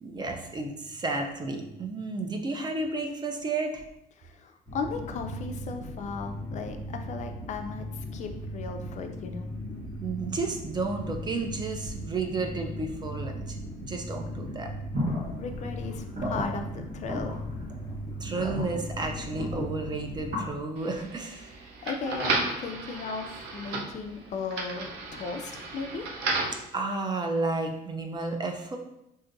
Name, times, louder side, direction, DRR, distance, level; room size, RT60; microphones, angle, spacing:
voice 1, 0.0-3.8 10.0-13.6 13.9-14.7 18.2-21.5 26.7-28.8, right 3 dB, 25° right, 3 dB, 0.4 m, -32 dB
voice 2, 4.2-9.5 15.4-17.4 21.8-26.1, left 4 dB, 45° left, 5 dB, 0.4 m, -36 dB
sound 1, 4.7-20.3, equal, 15° left, 0.9 m, -38 dB
sound 2, 14.9-20.5, left 1 dB, 50° right, 1.2 m, -35 dB
sound 3, 20.8-26.6, right 3 dB, 85° right, 0.6 m, -34 dB
3.8 x 2.6 x 2.5 m, 0.85 s
cardioid pair, 110°, 17 cm